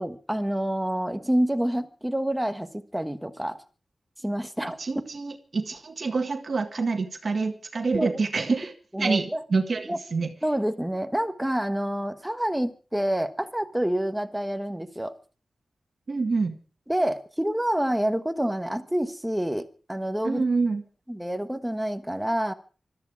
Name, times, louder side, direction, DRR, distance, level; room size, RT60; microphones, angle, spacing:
voice 1, 0.0-3.6 4.2-4.8 7.9-8.2 8.9-9.4 9.9-10.0 10.4-15.1 16.9-20.4 21.1-22.5, right 1 dB, 5° right, 9 dB, 1.3 m, -27 dB
voice 2, 4.8-8.7 9.0-10.3 16.1-16.6 20.2-20.8, right 4 dB, 50° right, 6 dB, 1.8 m, -27 dB
21.5 x 13.5 x 4.8 m, 0.38 s
wide cardioid pair, 125°, 0 cm